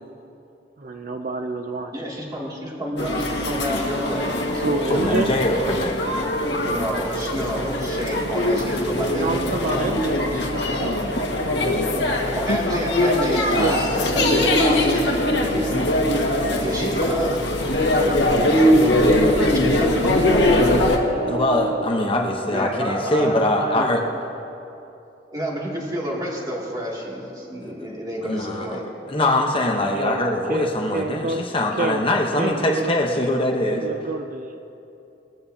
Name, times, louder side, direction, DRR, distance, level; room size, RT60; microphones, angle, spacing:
voice 1, 0.8-1.9 4.5-5.3 8.2-8.3 9.1-12.0 13.5-13.9 14.2-14.6 19.1-19.8 20.0-20.1 21.1-21.9 29.9-30.2 30.5-31.5 31.8-32.0 32.4-32.9 33.8-34.6, right 3 dB, 50° right, 6 dB, 0.5 m, -29 dB
voice 2, 1.9-4.6 6.7-9.9 12.3-15.9 16.6-17.4 18.1-18.3 19.8-20.4 22.5-23.9 25.3-28.8, equal, 20° right, -4 dB, 2.5 m, -29 dB
sound 1, 3.0-21.0, left 1 dB, 65° left, 1.7 m, -21 dB
voice 3, 4.9-5.9 17.9-18.5 21.3-24.0 28.2-28.8 29.1-33.9, left 1 dB, 30° left, 1 dB, 1.0 m, -23 dB
21.0 x 14.0 x 2.8 m, 2.9 s
head